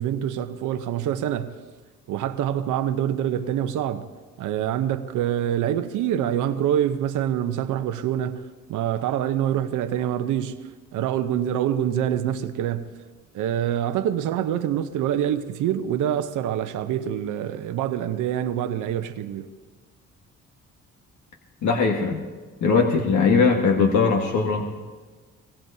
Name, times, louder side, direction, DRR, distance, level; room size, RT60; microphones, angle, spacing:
voice 1, 0.0-1.6 2.1-4.1 4.4-12.9 13.3-19.5, right 10 dB, 85° right, 0.8 m, -26 dB
voice 2, 21.6-22.2 22.6-24.8, left 4 dB, 70° left, 1.5 m, -20 dB
24.5 x 19.0 x 2.7 m
cardioid pair, 90°, 30 cm